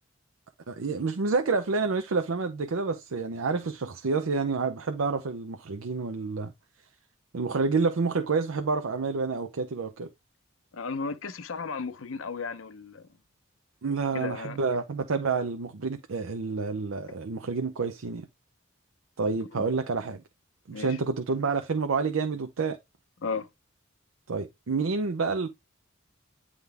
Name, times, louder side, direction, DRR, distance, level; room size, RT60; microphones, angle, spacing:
voice 1, 0.7-6.5 7.3-10.1 13.8-18.3 19.2-20.2 20.7-22.8 24.3-25.5, right 4 dB, 75° right, 0.6 m, -28 dB
voice 2, 10.7-13.0 14.1-14.6 19.5-19.6 20.7-21.0 23.2-23.5, left 4 dB, 70° left, 0.7 m, -34 dB
9.4 x 3.7 x 3.4 m
head